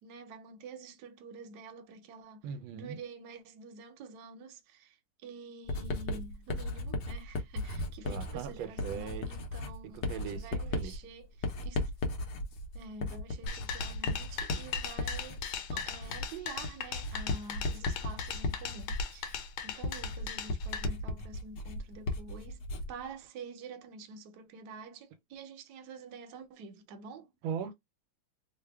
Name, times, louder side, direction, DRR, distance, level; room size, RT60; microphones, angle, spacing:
voice 1, 0.0-2.4 2.7-5.0 5.2-11.9 12.7-27.3, right 4 dB, 65° right, 1.1 m, -48 dB
voice 2, 2.4-3.0 8.0-9.4 9.8-11.0 27.4-27.7, right 7 dB, 85° right, 1.4 m, -39 dB
Writing, 5.7-23.0, left 2 dB, 65° left, 1.3 m, -36 dB
sound 1, 13.5-20.8, left 7 dB, 80° left, 1.5 m, -38 dB
3.4 x 2.1 x 3.4 m
omnidirectional pair, 2.2 m